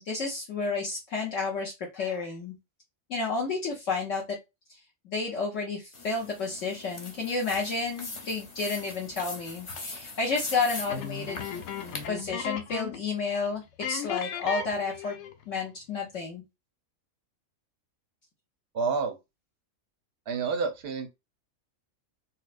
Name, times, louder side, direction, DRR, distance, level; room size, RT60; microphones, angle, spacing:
voice 1, 0.0-2.5 3.1-4.2 5.0-11.4 12.1-15.2 15.5-16.4, left 4 dB, 65° left, 1.1 m, -31 dB
sound 1, 5.9-12.1, left 3 dB, 40° left, 0.4 m, -41 dB
sound 2, 10.9-13.1 13.3-13.5 13.8-15.4, left 7 dB, 90° left, 1.1 m, -36 dB
voice 2, 18.7-19.2 20.3-21.1, right 5 dB, 60° right, 0.7 m, -29 dB
4.2 x 2.1 x 2.4 m
omnidirectional pair, 1.5 m